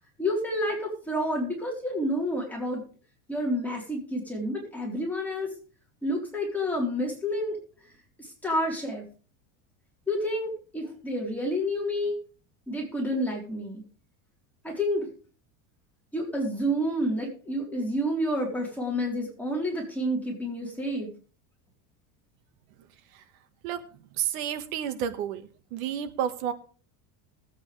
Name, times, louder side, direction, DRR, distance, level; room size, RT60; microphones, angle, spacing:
voice 1, 0.2-2.8 3.3-5.5 6.0-7.6 8.2-9.0 10.1-12.2 12.7-13.8 14.6-15.1 16.1-21.1, equal, 5° left, -3 dB, 4.0 m, -29 dB
voice 2, 24.2-25.4 25.7-26.5, right 9 dB, 75° right, 9 dB, 1.8 m, -30 dB
20.0 x 8.6 x 3.4 m, 0.39 s
supercardioid pair, 145°, 43 cm